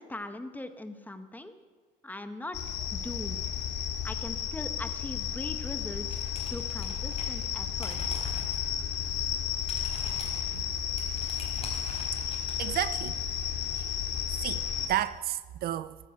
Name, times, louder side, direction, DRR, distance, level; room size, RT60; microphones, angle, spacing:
voice 1, 0.0-1.5 2.0-3.4 4.0-6.2 6.5-8.0, left 2 dB, 10° left, 1.2 m, -40 dB
sound 1, 2.5-14.9, left 9 dB, 90° left, 2.3 m, -33 dB
sound 2, 6.0-7.5 7.7-8.6 9.0-9.2 9.4-12.8, left 3 dB, 35° left, 5.0 m, -43 dB
voice 2, 12.1-13.2 13.8-14.0 14.4-16.0, right 12 dB, 65° right, 0.6 m, -33 dB
14.5 x 13.5 x 6.5 m
cardioid pair, 110°, 17 cm